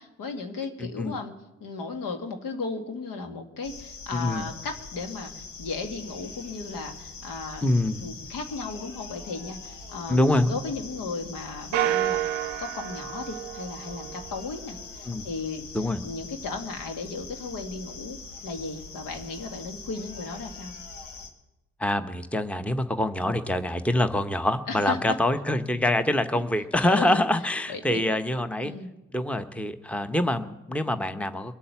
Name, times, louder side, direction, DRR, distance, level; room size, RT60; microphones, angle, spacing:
voice 1, 0.0-1.3 1.6-7.6 8.0-12.2 12.6-15.7 16.0-18.2 18.4-20.8 24.7-25.2 26.8-27.2 27.7-28.0 28.6-28.9, left 4 dB, 65° left, 5 dB, 2.1 m, -35 dB
voice 2, 0.8-1.1 4.1-4.5 7.6-8.1 10.1-10.5 15.1-15.3 15.7-16.0 21.8-28.7 29.1-31.6, left 1 dB, 5° left, 10 dB, 1.1 m, -25 dB
sound 1, 3.6-21.3, left 4 dB, 85° left, 1.4 m, -43 dB
sound 2, 11.7-14.4, right 13 dB, 85° right, 0.6 m, -29 dB
22.5 x 8.5 x 7.1 m, 0.96 s
hypercardioid pair, 40°, 36 cm